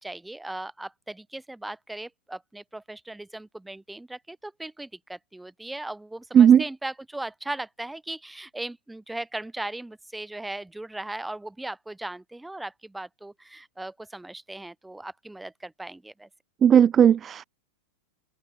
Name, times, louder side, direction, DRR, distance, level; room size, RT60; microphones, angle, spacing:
voice 1, 0.0-16.3, right 2 dB, 5° right, 7.5 m, -38 dB
voice 2, 16.6-17.4, right 8 dB, 25° right, 0.4 m, -16 dB
open air
figure-of-eight pair, 90°, 0 cm